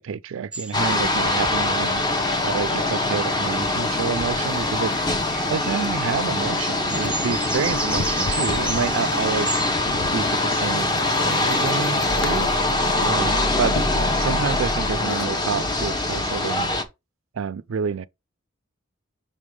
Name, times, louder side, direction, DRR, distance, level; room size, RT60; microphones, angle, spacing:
voice 1, 0.0-2.0 2.4-5.0 5.5-9.6 10.1-12.5 13.0-13.8 14.1-16.7 17.3-18.1, right 6 dB, 75° right, 0.4 m, -28 dB
sound 1, 0.5-3.7 4.4-10.4, right 2 dB, 5° right, 0.5 m, -35 dB
sound 2, 0.7-16.8, left 2 dB, 20° left, 0.8 m, -23 dB
sound 3, 6.9-15.5, left 3 dB, 65° left, 0.6 m, -37 dB
5.6 x 3.6 x 4.7 m
head